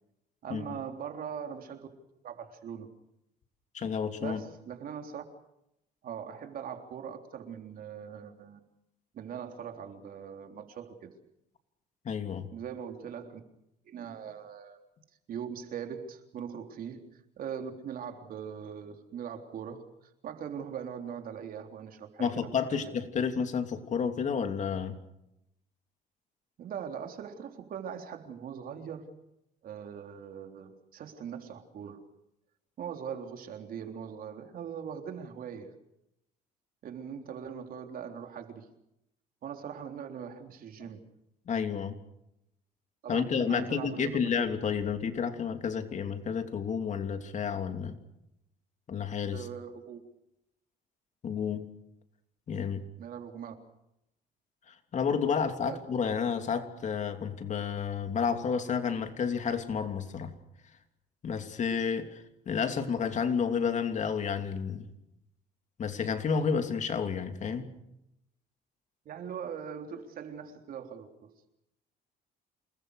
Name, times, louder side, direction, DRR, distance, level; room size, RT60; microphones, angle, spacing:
voice 1, 0.4-1.9 2.2-2.9 4.2-5.2 6.0-8.6 9.1-11.2 12.5-13.4 13.9-14.8 15.3-19.9 20.2-22.9 26.6-29.1 29.6-32.1 32.8-35.7 36.8-38.7 39.4-41.1 43.0-44.2 49.3-50.0 53.0-53.5 55.6-55.8 69.1-71.3, right 8 dB, 60° right, 5 dB, 3.7 m, -41 dB
voice 2, 3.7-4.4 12.0-12.5 22.2-25.0 41.5-41.9 43.1-48.0 48.9-49.5 51.2-51.7 52.5-52.8 54.7-60.3 61.2-64.9 65.8-67.7, left 6 dB, 45° left, 7 dB, 3.0 m, -31 dB
28.5 x 20.5 x 6.5 m, 0.84 s
cardioid pair, 110°, 17 cm